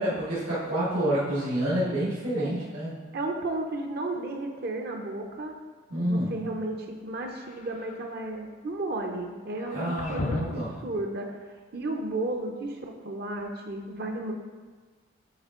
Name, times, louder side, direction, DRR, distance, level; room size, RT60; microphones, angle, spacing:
voice 1, 0.0-2.9 5.9-6.4 9.7-10.7, right 1 dB, 80° right, -12 dB, 2.0 m, -28 dB
voice 2, 2.4-2.7 3.1-5.5 6.0-10.5 10.8-14.3, right 2 dB, 50° right, 3 dB, 0.6 m, -33 dB
sound 1, 7.3-8.1 9.6-10.8, left 3 dB, 35° left, 0.3 m, -37 dB
8.8 x 3.7 x 3.7 m, 1.4 s
head